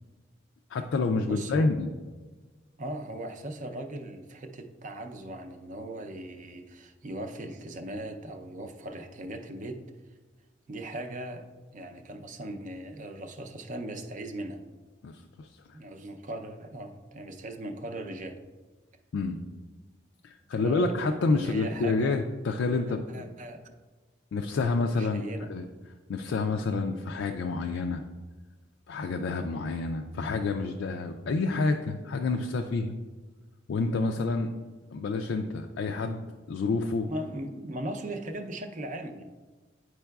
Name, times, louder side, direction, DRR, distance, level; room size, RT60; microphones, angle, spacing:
voice 1, 0.7-1.9 15.0-15.8 19.1-19.4 20.2-23.3 24.3-25.2 25.5-25.6 26.1-28.0 28.9-33.0 33.7-34.5 34.9-36.2 36.5-37.1, left 3 dB, 80° left, 4 dB, 0.4 m, -28 dB
voice 2, 1.2-1.7 2.8-9.8 10.7-11.4 11.7-14.7 15.7-18.4 20.6-22.1 23.1-23.7 25.0-25.5 37.1-39.2, right 1 dB, 45° right, 5 dB, 0.6 m, -39 dB
9.9 x 4.6 x 2.3 m, 1.3 s
head